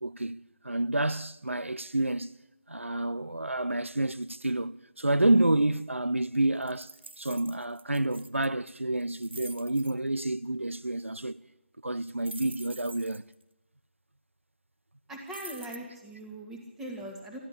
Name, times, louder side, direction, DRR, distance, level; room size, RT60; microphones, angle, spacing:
voice 1, 0.0-2.3 2.7-11.4 11.8-13.2, right 1 dB, 90° right, 0.5 m, -29 dB
sound 1, 6.6-8.5 9.0-9.9 12.2-13.3 15.3-15.8, right 3 dB, 65° right, 0.8 m, -46 dB
voice 2, 15.1-17.4, right 1 dB, 5° right, 1.8 m, -41 dB
13.0 x 11.0 x 8.4 m
figure-of-eight pair, 155°, 7 cm